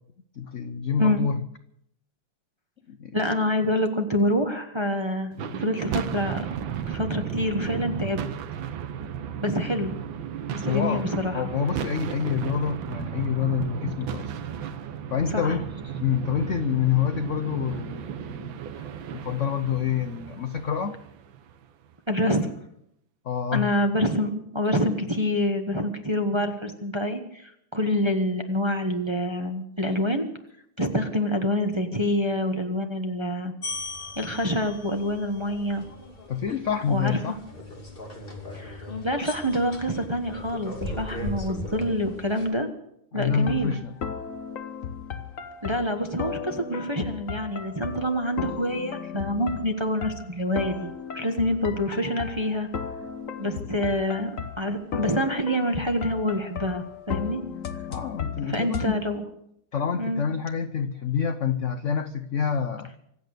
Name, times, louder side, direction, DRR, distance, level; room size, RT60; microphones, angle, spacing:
voice 1, 0.4-1.4 2.9-3.2 5.4-5.6 10.6-11.1 11.3-14.3 15.1-15.7 16.0-18.8 19.1-21.0 23.2-23.7 36.3-37.4 43.1-43.9 57.9-59.0 59.7-62.9, left 7 dB, 65° left, 10 dB, 0.7 m, -27 dB
voice 2, 3.1-5.3 5.6-6.4 6.9-8.2 9.4-9.9 10.5-11.5 15.3-15.6 22.1-22.5 23.5-30.3 30.8-33.5 34.2-35.8 36.9-37.3 38.5-42.7 43.1-43.8 45.6-52.7 53.4-54.3 54.6-57.4 58.4-59.2 60.0-60.2, equal, 15° right, 5 dB, 1.0 m, -26 dB
sound 1, 5.3-21.7, right 8 dB, 70° right, 1.6 m, -34 dB
sound 2, 33.6-42.5, left 1 dB, 25° left, 2.7 m, -38 dB
sound 3, 43.3-58.9, left 7 dB, 45° left, 1.2 m, -35 dB
25.5 x 8.6 x 6.7 m, 0.75 s
omnidirectional pair, 2.3 m